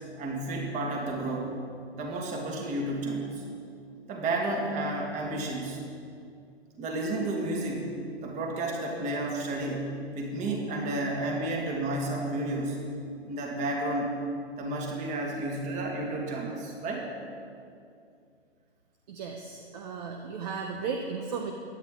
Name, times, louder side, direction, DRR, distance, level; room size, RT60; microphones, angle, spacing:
voice 1, 0.2-1.5 2.0-3.4 4.1-5.8 6.8-7.9 8.2-12.8 13.2-14.2 14.6-17.1, right 2 dB, 20° right, 0 dB, 2.1 m, -31 dB
voice 2, 19.1-21.5, right 5 dB, 40° right, 3 dB, 1.0 m, -35 dB
16.0 x 11.0 x 3.8 m, 2.4 s
figure-of-eight pair, 125°, 32 cm